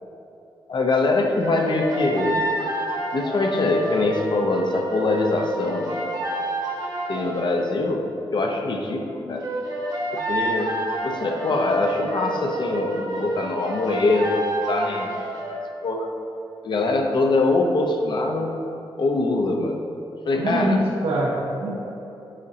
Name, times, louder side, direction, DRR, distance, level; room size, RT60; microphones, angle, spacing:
voice 1, 0.7-2.4 3.1-6.1 7.1-8.1 8.3-9.5 10.1-10.7 11.0-15.1 15.8-16.1 16.6-18.5 19.0-19.8 20.2-20.8, left 2 dB, 55° left, 2 dB, 0.8 m, -23 dB
sound 1, 1.4-7.6 9.4-15.6, right 1 dB, 45° right, 1.2 m, -29 dB
voice 2, 20.4-21.8, right 1 dB, 85° right, -3 dB, 1.3 m, -24 dB
10.0 x 4.0 x 2.9 m, 2.9 s
cardioid pair, 100°, 9 cm